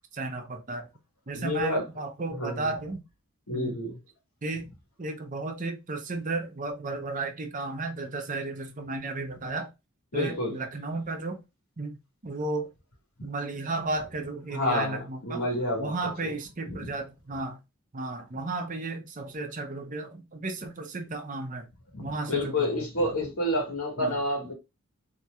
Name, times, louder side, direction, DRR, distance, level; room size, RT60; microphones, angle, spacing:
voice 1, 0.1-0.9 1.3-3.0 3.5-3.8 4.4-4.7 5.0-9.7 10.1-11.4 11.8-12.0 12.2-12.7 13.2-15.4 15.8-17.6 17.9-21.7 22.0-23.1 24.0-24.1, right 3 dB, 35° right, 0.7 m, -34 dB
voice 2, 1.3-1.8 2.3-2.7 3.5-4.0 10.1-10.5 14.5-15.9 16.2-16.3 16.7-16.9 21.9-24.5, left 1 dB, 80° left, 1.8 m, -29 dB
4.2 x 2.8 x 2.4 m
head